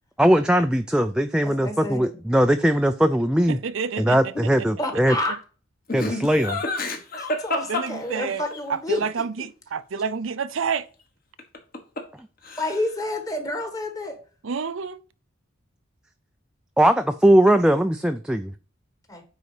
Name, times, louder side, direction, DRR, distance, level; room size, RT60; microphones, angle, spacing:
voice 1, 0.2-3.6 4.0-5.1 5.9-6.6 16.8-18.5, right 1 dB, 5° right, 0.3 m, -20 dB
voice 2, 1.4-2.1 4.8-5.4 7.2-9.0 9.4-9.5 12.6-14.2 19.1-19.2, left 1 dB, 15° left, 1.4 m, -29 dB
voice 3, 3.5-4.2 7.7-8.4 8.7-10.9 14.4-15.0, right 6 dB, 75° right, 0.6 m, -28 dB
Laughter, 5.9-8.6 11.4-12.2 12.4-13.0, left 2 dB, 45° left, 1.5 m, -29 dB
9.4 x 4.1 x 4.9 m
head